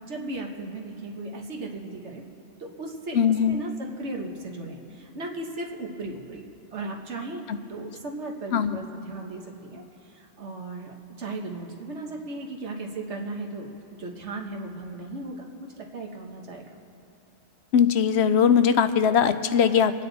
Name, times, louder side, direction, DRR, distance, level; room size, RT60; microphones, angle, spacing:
voice 1, 0.1-2.2 2.6-3.2 3.5-13.7 14.0-16.8, right 2 dB, 70° right, 1 dB, 1.5 m, -36 dB
voice 2, 3.1-3.6 8.5-8.8 17.7-19.9, left 7 dB, 70° left, 11 dB, 0.8 m, -20 dB
26.5 x 9.3 x 4.0 m, 2.7 s
omnidirectional pair, 1.2 m